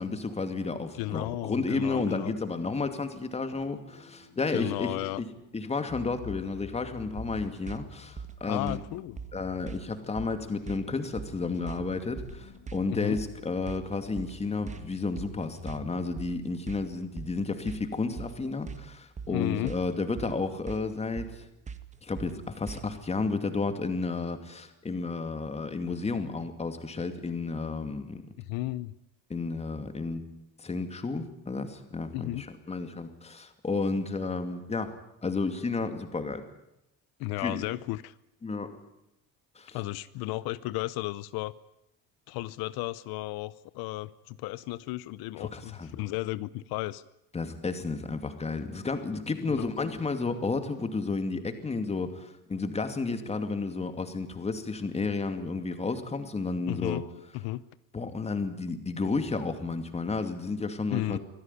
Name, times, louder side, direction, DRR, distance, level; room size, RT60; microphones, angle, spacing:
voice 1, 0.0-5.3 5.5-8.8 9.3-21.4 22.0-28.2 29.3-30.3 30.6-36.4 37.4-37.6 38.4-38.8 39.6-39.8 45.4-46.0 47.3-57.0 57.9-61.2, left 3 dB, 15° left, 8 dB, 2.5 m, -32 dB
voice 2, 0.9-2.3 4.5-5.2 8.5-9.2 12.9-13.2 19.3-19.7 28.4-28.9 32.1-32.4 37.2-38.1 39.7-41.5 42.3-47.0 49.4-49.7 56.7-57.0 57.3-57.6 60.9-61.2, left 17 dB, 80° left, 17 dB, 0.8 m, -34 dB
sound 1, 2.3-16.3, left 8 dB, 50° left, 5.3 m, -50 dB
sound 2, 7.2-23.1, right 6 dB, 20° right, 1.7 m, -42 dB
25.0 x 17.0 x 9.9 m, 0.84 s
cardioid pair, 150°, 36 cm